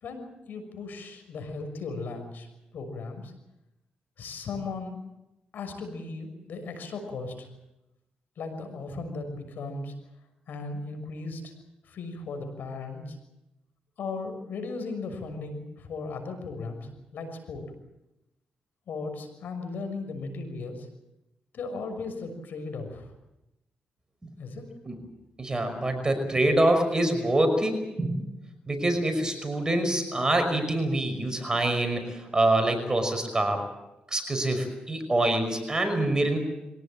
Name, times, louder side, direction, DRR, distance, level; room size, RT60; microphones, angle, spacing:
voice 1, 0.0-2.5 2.7-3.3 4.2-5.0 5.5-7.5 8.4-9.9 10.5-11.5 11.8-13.2 14.0-17.6 18.9-20.9 21.5-23.1 24.4-24.7, left 3 dB, 75° left, 7 dB, 6.2 m, -36 dB
voice 2, 25.4-28.3 28.7-33.6 34.1-36.4, right 1 dB, 25° right, 6 dB, 5.6 m, -25 dB
24.5 x 17.5 x 8.9 m, 0.94 s
cardioid pair, 65°, 3 cm